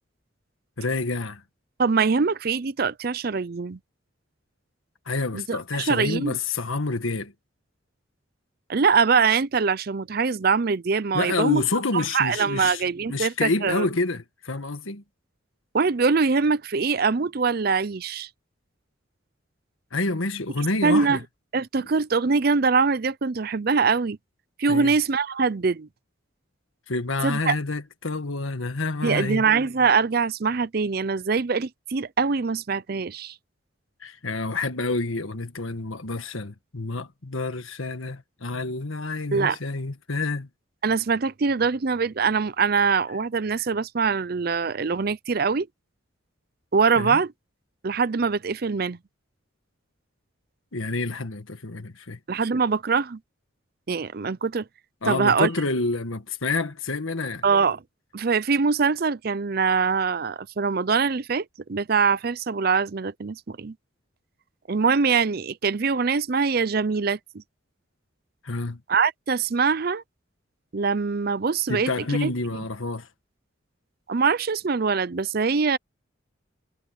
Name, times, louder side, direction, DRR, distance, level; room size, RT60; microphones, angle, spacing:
voice 1, 0.8-1.4 5.1-7.3 11.1-12.8 13.1-15.0 19.9-21.2 24.7-24.9 26.9-29.4 34.0-40.5 47.0-47.2 50.7-52.2 55.0-57.4 68.4-68.8 71.7-73.1, left 3 dB, 90° left, 1.7 m, -28 dB
voice 2, 1.8-3.8 5.3-6.4 8.7-11.6 11.9-13.9 15.7-18.3 20.8-21.2 21.5-24.2 24.6-25.9 27.2-27.6 29.0-33.3 39.3-39.6 40.8-45.7 46.7-47.3 47.8-49.0 52.3-53.2 53.9-54.6 55.1-55.5 57.4-57.8 58.1-63.7 64.7-67.4 68.9-70.0 70.7-72.3 74.1-75.8, right 5 dB, 50° right, 0.5 m, -23 dB
head